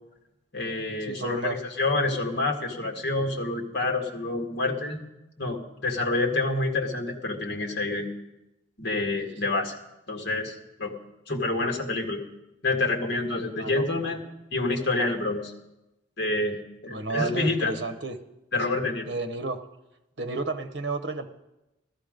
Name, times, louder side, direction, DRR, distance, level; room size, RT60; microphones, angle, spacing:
voice 1, 0.5-5.0 5.4-8.1 8.8-9.8 10.1-10.9 11.3-12.2 12.6-14.2 14.5-15.5 16.2-16.6 16.8-17.7 18.5-19.1, left 2 dB, 60° left, 2 dB, 2.0 m, -27 dB
voice 2, 1.1-1.6 13.5-13.8 16.9-18.2 19.1-19.6 20.2-21.3, right 3 dB, 60° right, 8 dB, 1.1 m, -31 dB
14.5 x 14.0 x 5.2 m, 0.94 s
head